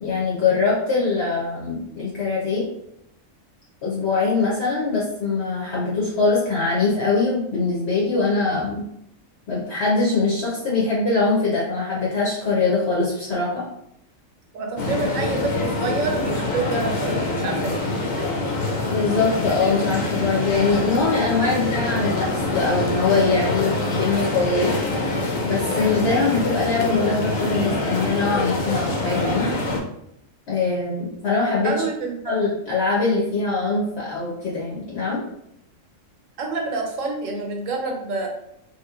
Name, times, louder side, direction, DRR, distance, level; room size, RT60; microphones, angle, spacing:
voice 1, 0.0-2.7 3.8-8.8 9.5-13.6 18.9-24.7 25.4-29.5 30.5-31.7 32.2-35.2, left 3 dB, 60° left, -5 dB, 0.9 m, -22 dB
voice 2, 14.5-17.9 18.2-18.3 18.6-18.9 31.6-32.4 36.4-38.3, right 3 dB, 75° right, 1 dB, 1.0 m, -28 dB
sound 1, 14.8-29.8, left 2 dB, 80° left, 1.1 m, -25 dB
3.0 x 2.9 x 2.4 m, 0.77 s
omnidirectional pair, 1.4 m